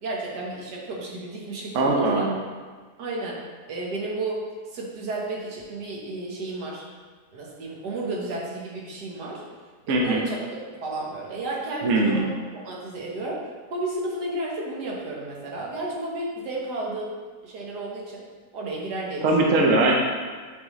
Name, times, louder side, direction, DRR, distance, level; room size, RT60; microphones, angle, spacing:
voice 1, 0.0-2.2 3.0-3.4 3.7-4.5 4.7-6.8 7.3-9.4 9.9-12.3 12.6-13.4 13.7-17.1 17.4-18.2 18.5-19.6, right 2 dB, 80° right, -3 dB, 1.7 m, -32 dB
voice 2, 1.7-2.3 9.9-10.2 11.8-12.3 19.2-19.9, right 2 dB, 60° right, 0 dB, 1.0 m, -20 dB
9.1 x 3.7 x 3.1 m, 1.5 s
omnidirectional pair, 1.8 m